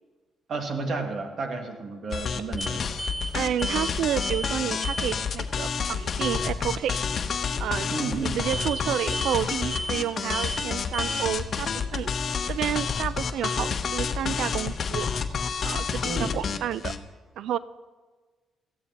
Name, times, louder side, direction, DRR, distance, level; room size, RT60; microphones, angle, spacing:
voice 1, 0.5-2.8 7.9-8.4 16.0-16.3, right 3 dB, 55° right, 3 dB, 1.9 m, -31 dB
sound 1, 2.1-17.0, left 6 dB, 50° left, 0.8 m, -29 dB
sound 2, 2.6-2.7 3.0-3.3 3.6-4.6 4.8-5.2 8.5-8.8 9.1-9.4 9.7-10.1 10.3-10.7 10.9-11.3, right 1 dB, 25° right, 2.4 m, -33 dB
voice 2, 3.3-7.0 7.6-7.9 8.4-12.1 12.5-15.1 15.6-16.9 17.4-17.6, right 10 dB, 75° right, 16 dB, 0.3 m, -30 dB
18.5 x 14.0 x 2.9 m, 1.4 s
cardioid pair, 90°, 0 cm